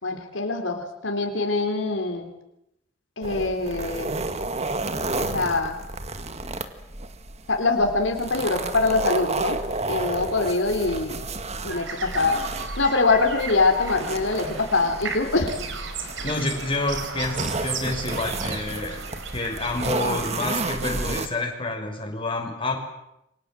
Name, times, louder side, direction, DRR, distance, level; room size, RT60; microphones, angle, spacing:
voice 1, 0.0-2.3 3.2-4.1 5.2-5.8 7.5-9.6 9.9-11.2 11.6-12.4 12.8-15.6, left 3 dB, 85° left, 4 dB, 3.8 m, -24 dB
sound 1, 3.2-21.3, right 2 dB, 35° right, 2.0 m, -32 dB
sound 2, 11.7-21.1, right 5 dB, 75° right, 4.4 m, -36 dB
voice 2, 16.2-19.0 19.3-22.8, left 2 dB, 30° left, 1 dB, 5.9 m, -28 dB
28.0 x 24.0 x 7.8 m, 0.85 s
head